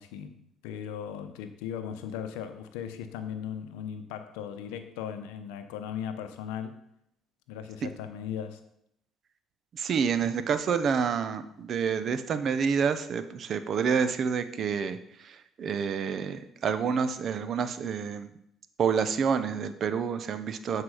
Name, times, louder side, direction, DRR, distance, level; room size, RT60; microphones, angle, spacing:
voice 1, 0.0-6.8 7.5-8.6, left 8 dB, 90° left, 9 dB, 0.7 m, -38 dB
voice 2, 9.7-18.3 18.8-20.8, right 6 dB, 55° right, 11 dB, 0.7 m, -28 dB
8.2 x 4.6 x 4.9 m, 0.75 s
supercardioid pair, 75°, 0 cm